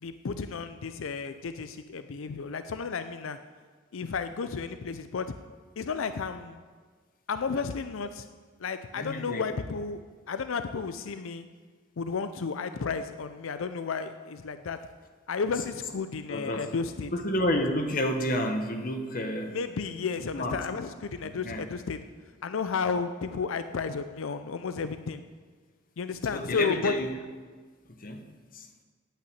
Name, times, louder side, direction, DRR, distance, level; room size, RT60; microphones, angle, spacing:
voice 1, 0.0-3.4 3.9-5.3 5.8-6.6 7.3-8.3 8.6-10.0 10.3-11.5 12.0-14.8 15.3-17.1 19.5-22.0 22.4-25.2 26.0-26.9, left 5 dB, 90° left, 10 dB, 0.5 m, -32 dB
voice 2, 8.9-9.4 16.3-16.6 17.1-19.6 20.3-20.6 21.2-21.6 26.3-27.1 28.0-28.2 28.5-28.6, left 1 dB, 45° left, 5 dB, 1.1 m, -30 dB
9.0 x 8.6 x 8.6 m, 1.5 s
head